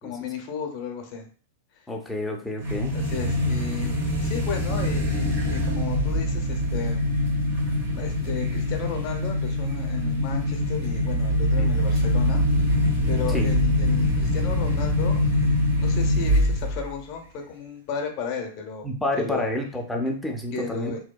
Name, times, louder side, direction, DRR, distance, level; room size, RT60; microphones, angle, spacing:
voice 1, 0.0-1.3 1.8-1.9 2.9-7.0 7.9-12.4 13.0-18.9 19.2-19.4 20.5-21.0, left 6 dB, 45° left, 3 dB, 0.6 m, -34 dB
voice 2, 1.9-2.9 11.6-11.7 13.3-13.5 18.8-20.9, left 1 dB, 5° left, 1 dB, 0.5 m, -29 dB
sound 1, 2.6-16.9, left 1 dB, 50° right, 1.2 m, -24 dB
2.7 x 2.1 x 2.2 m, 0.42 s
hypercardioid pair, 125°, 0 cm